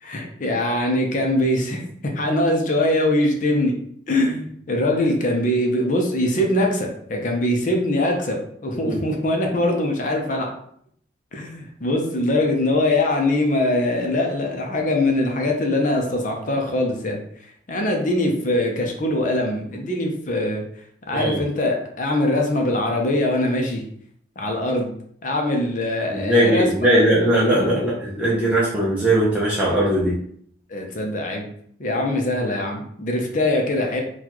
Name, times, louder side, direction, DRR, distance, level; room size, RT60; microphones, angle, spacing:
voice 1, 0.0-3.8 4.1-10.5 11.3-17.2 17.7-20.6 21.1-23.8 24.4-24.9 25.2-27.0 30.7-31.5 31.8-34.0, left 1 dB, 45° left, 2 dB, 0.6 m, -22 dB
voice 2, 26.1-30.1, right 1 dB, 5° right, -8 dB, 0.7 m, -19 dB
4.1 x 2.3 x 2.9 m, 0.65 s
head